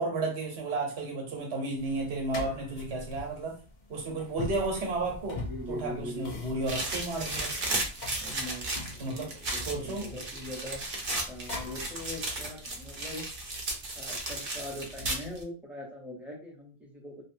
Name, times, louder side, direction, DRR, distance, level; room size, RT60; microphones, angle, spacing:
voice 1, 0.0-3.6 3.9-5.4 5.7-7.5 9.0-10.1, right 2 dB, 80° right, 1 dB, 1.1 m, -33 dB
sound 1, 1.8-12.2, left 2 dB, 50° left, 0.7 m, -44 dB
voice 2, 5.3-6.4 8.2-10.8 11.3-13.2 14.0-17.1, left 1 dB, ahead, -3 dB, 0.7 m, -41 dB
sound 2, 6.7-15.4, right 2 dB, 55° right, 0.8 m, -35 dB
2.8 x 2.1 x 2.6 m, 0.36 s
omnidirectional pair, 1.1 m